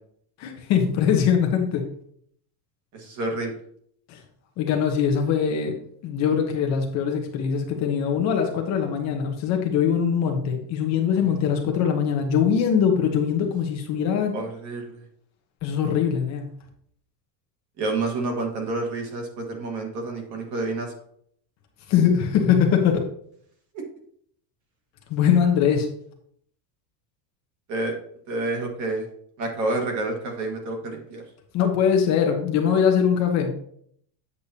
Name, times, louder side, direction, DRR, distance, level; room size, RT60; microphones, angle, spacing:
voice 1, 0.4-1.8 4.1-4.2 4.6-5.7 6.0-14.3 15.6-16.5 21.9-23.0 25.1-25.9 31.5-33.5, left 7 dB, 35° left, 3 dB, 0.9 m, -22 dB
voice 2, 2.9-3.5 11.1-11.3 14.3-15.0 17.8-20.9 23.7-23.8 27.7-27.9 28.3-29.1 29.4-31.2, right 2 dB, 35° right, 2 dB, 1.5 m, -29 dB
8.3 x 6.5 x 2.8 m, 0.65 s
cardioid pair, 175°, 49 cm